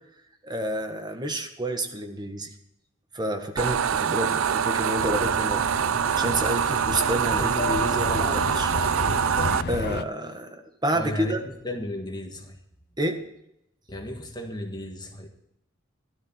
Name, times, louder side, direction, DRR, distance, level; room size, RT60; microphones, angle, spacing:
voice 1, 0.4-2.5 3.1-5.7 6.2-8.7 9.7-11.4 13.0-13.2, right 1 dB, 20° right, 5 dB, 1.6 m, -29 dB
sound 1, 3.6-9.6, right 8 dB, 80° right, 0.5 m, -24 dB
sound 2, 4.9-10.0, left 4 dB, 55° left, 0.7 m, -32 dB
voice 2, 10.9-12.6 13.9-15.3, left 1 dB, 20° left, 3 dB, 1.7 m, -34 dB
14.5 x 12.5 x 4.5 m, 0.81 s
head